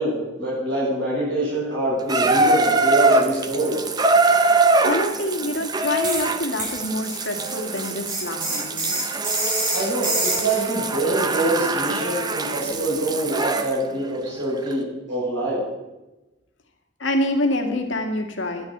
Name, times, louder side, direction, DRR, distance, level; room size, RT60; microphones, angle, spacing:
voice 1, 0.0-3.8 9.7-15.6, right 1 dB, 70° right, -6 dB, 6.5 m, -25 dB
Water tap faucet / Bathtub (filling or washing), 2.1-13.7 14.7-14.8, right 3 dB, 20° right, 0.7 m, -23 dB
voice 2, 4.8-9.0 17.0-18.7, left 1 dB, 70° left, 4 dB, 2.0 m, -26 dB
sound 1, 6.0-6.3 6.6-10.6, right 2 dB, 40° right, 5.4 m, -26 dB
12.5 x 10.5 x 7.3 m, 1.1 s
head